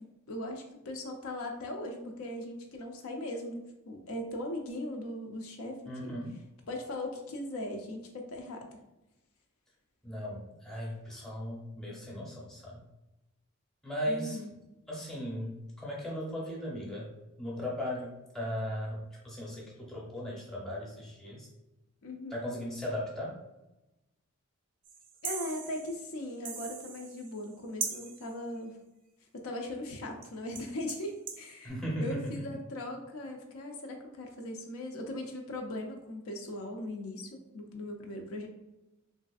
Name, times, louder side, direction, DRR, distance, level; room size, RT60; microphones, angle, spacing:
voice 1, 0.3-6.2 6.7-8.7 14.1-14.5 22.0-22.4 25.2-28.7 29.3-31.7 32.0-38.5, left 1 dB, 80° left, 2 dB, 0.5 m, -39 dB
voice 2, 5.9-6.4 10.0-12.8 13.8-14.4 14.9-17.1 17.4-21.5 22.3-23.4 31.6-32.4, equal, ahead, -5 dB, 0.7 m, -37 dB
sound 1, 24.8-27.5 27.8-28.4 30.2-30.3 30.5-31.5, right 6 dB, 40° right, 0.4 m, -40 dB
3.2 x 2.5 x 2.3 m, 0.97 s
head